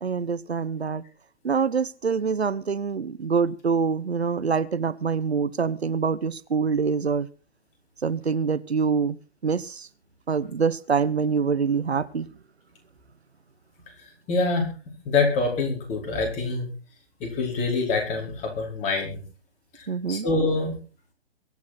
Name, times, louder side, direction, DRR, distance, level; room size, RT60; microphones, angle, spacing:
voice 1, 0.0-1.0 1.4-7.3 8.0-9.2 9.4-9.9 10.3-12.3 19.9-20.3, right 5 dB, 85° right, 18 dB, 1.0 m, -25 dB
voice 2, 14.3-14.7 15.0-16.7 17.2-19.2 19.8-20.7, left 3 dB, 20° left, 1 dB, 4.8 m, -25 dB
23.5 x 8.4 x 4.3 m, 0.35 s
figure-of-eight pair, 135°, 32 cm